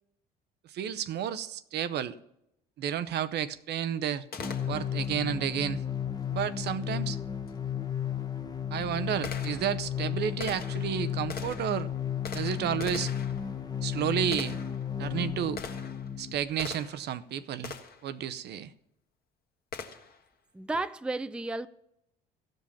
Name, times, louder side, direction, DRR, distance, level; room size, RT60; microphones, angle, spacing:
voice 1, 0.7-2.1 2.8-4.2 4.7-5.8 6.3-7.2 8.7-11.9 12.3-13.1 13.8-14.6 15.0-15.6 16.2-17.8 18.0-18.7, right 9 dB, 55° right, 0.7 m, -31 dB
Gunshot gunfire, 4.3-5.1 7.5-7.6 8.3-17.1 17.6-18.1 19.7-20.2, left 5 dB, 50° left, 1.5 m, -43 dB
sound 1, 4.4-16.4, left 9 dB, 20° left, 1.1 m, -34 dB
voice 2, 20.5-21.7, right 2 dB, 5° right, 0.4 m, -33 dB
15.0 x 5.3 x 7.1 m
hypercardioid pair, 65°, 20 cm